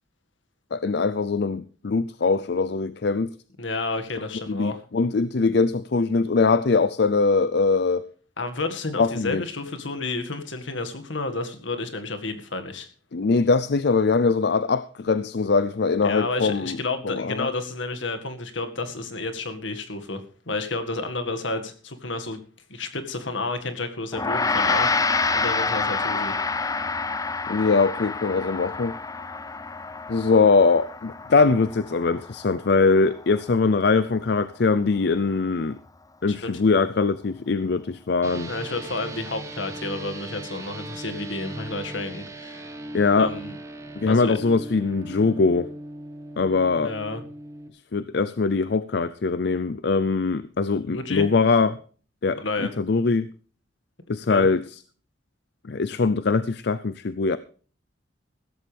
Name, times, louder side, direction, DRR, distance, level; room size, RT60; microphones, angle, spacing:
voice 1, 0.7-3.3 4.5-8.0 9.0-9.4 13.1-16.8 17.0-17.5 27.5-29.0 30.1-35.8 36.2-38.5 42.9-43.3 44.0-45.7 46.4-46.9 47.9-51.8 52.2-52.4 52.8-53.3 54.1-54.6 55.7-57.4, left 4 dB, 60° left, 16 dB, 0.5 m, -22 dB
voice 2, 3.6-4.8 8.4-12.9 16.0-20.2 20.5-22.4 22.7-25.0 25.3-26.4 36.3-36.6 38.5-42.8 43.1-43.5 44.1-44.4 46.8-47.2 50.9-51.3 52.4-52.7 54.3-54.5, left 3 dB, 75° left, 7 dB, 2.0 m, -31 dB
Gong, 24.1-33.7, left 4 dB, 20° left, 0.6 m, -28 dB
sound 1, 38.2-47.7, right 1 dB, 15° right, 1.7 m, -38 dB
15.5 x 13.5 x 3.4 m, 0.41 s
head